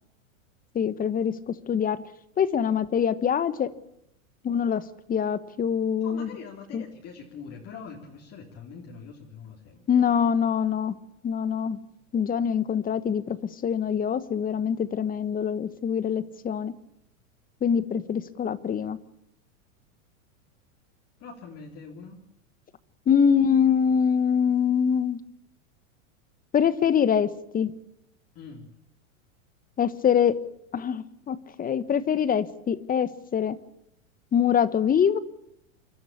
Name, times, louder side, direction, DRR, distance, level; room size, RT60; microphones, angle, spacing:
voice 1, 0.7-2.0 2.4-3.7 4.4-4.8 5.1-6.3 6.7-6.8 9.9-11.0 11.2-11.8 12.1-13.4 13.6-16.7 17.6-19.0 23.1-25.2 26.5-27.3 27.5-27.7 29.8-30.4 30.7-33.6 34.3-35.2, left 7 dB, 20° left, 16 dB, 1.2 m, -24 dB
voice 2, 6.0-9.9 21.2-22.2 28.4-28.7, left 5 dB, 35° left, 0 dB, 3.6 m, -43 dB
28.0 x 12.5 x 8.6 m, 0.81 s
hypercardioid pair, 110°, 41 cm